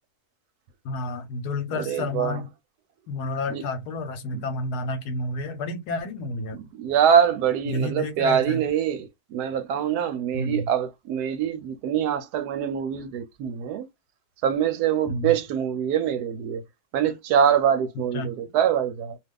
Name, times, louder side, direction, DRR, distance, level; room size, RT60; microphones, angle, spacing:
voice 1, 0.8-2.5 3.1-6.6 7.7-8.6 10.3-10.7 15.1-15.3 18.1-18.3, left 2 dB, 80° left, 1.2 m, -30 dB
voice 2, 1.8-2.4 3.5-3.6 4.3-4.4 6.5-13.9 14.4-16.6 16.9-19.2, right 8 dB, 80° right, 1.1 m, -24 dB
2.7 x 2.3 x 3.4 m
omnidirectional pair, 1.7 m